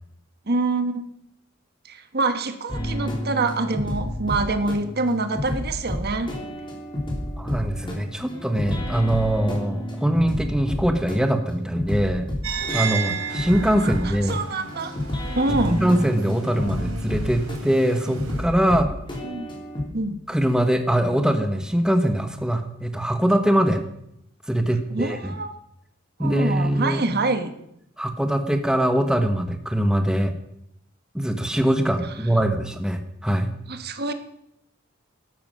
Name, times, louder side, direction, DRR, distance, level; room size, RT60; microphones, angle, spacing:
voice 1, 0.5-1.1 1.9-6.3 13.8-14.9 15.3-15.8 19.2-19.5 19.9-20.2 24.9-25.5 26.2-27.5 33.7-34.1, right 3 dB, 50° right, 8 dB, 1.3 m, -26 dB
sound 1, 2.7-19.9, left 1 dB, 25° left, 3.7 m, -30 dB
voice 2, 7.4-12.3 12.7-14.4 15.6-18.9 20.3-23.8 24.5-25.3 26.2-27.1 28.0-30.3 31.1-33.5, right 1 dB, 5° right, 6 dB, 1.2 m, -22 dB
sound 2, 12.4-18.4, right 6 dB, 90° right, 3.8 m, -34 dB
13.0 x 12.5 x 6.4 m, 0.77 s
head